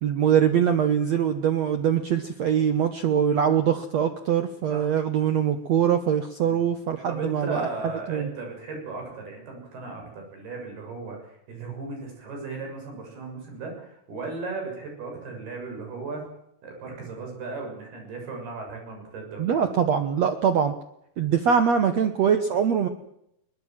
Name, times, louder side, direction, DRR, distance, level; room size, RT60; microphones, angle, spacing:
voice 1, 0.0-7.7 8.1-8.3 19.4-20.7 21.2-22.9, right 8 dB, 85° right, 8 dB, 1.5 m, -23 dB
voice 2, 7.1-16.2 16.6-19.7, right 3 dB, 65° right, 3 dB, 8.7 m, -36 dB
22.0 x 21.0 x 7.4 m, 0.77 s
omnidirectional pair, 4.9 m